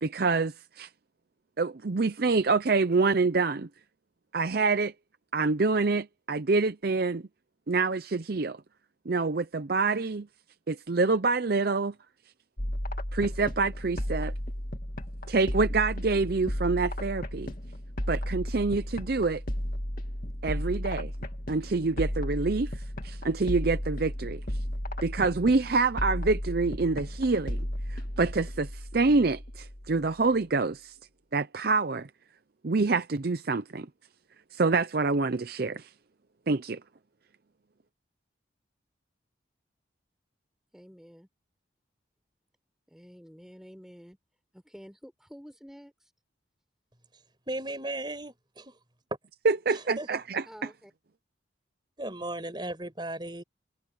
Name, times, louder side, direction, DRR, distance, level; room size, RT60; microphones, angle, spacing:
voice 1, 0.0-0.9 1.6-3.7 4.3-4.9 5.3-7.2 7.7-8.6 9.1-10.3 10.7-11.9 13.1-14.3 15.3-17.5 18.1-19.4 20.4-21.1 21.5-22.7 23.0-24.4 25.0-27.6 27.9-30.9 31.3-32.1 32.6-33.9 34.5-35.9 36.5-36.8 49.4-50.4, right 3 dB, 50° right, 0.6 m, -26 dB
sound 1, 12.6-30.2, equal, 45° left, 2.5 m, -34 dB
voice 2, 40.7-41.3 42.9-44.2 44.5-46.1 50.5-50.9, equal, ahead, 6.6 m, -49 dB
voice 3, 47.5-48.7 49.7-50.1 52.0-53.4, right 1 dB, 25° right, 5.3 m, -36 dB
head